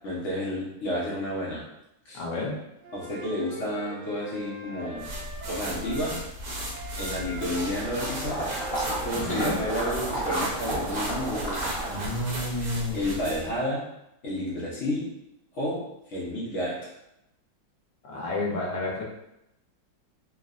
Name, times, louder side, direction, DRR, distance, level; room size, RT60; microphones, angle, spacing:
voice 1, 0.0-1.6 2.1-2.2 2.9-5.0 5.5-6.2 6.8-11.6 12.9-13.8 14.2-15.1 15.5-15.8 16.1-16.8, left 1 dB, 85° left, -6 dB, 0.6 m, -31 dB
voice 2, 2.1-2.6 9.1-9.6 11.9-13.0 18.0-19.0, left 2 dB, 65° left, -3 dB, 1.2 m, -30 dB
Wind instrument woodwind instrument, 2.8-6.2 6.7-10.5, right 2 dB, 85° right, 1.5 m, -41 dB
sound 1, 5.0-13.6, right 1 dB, 65° right, 1.0 m, -36 dB
Water / Liquid, 7.4-12.3, right 1 dB, 5° left, 0.7 m, -32 dB
3.6 x 2.0 x 2.4 m, 0.86 s
omnidirectional pair, 2.2 m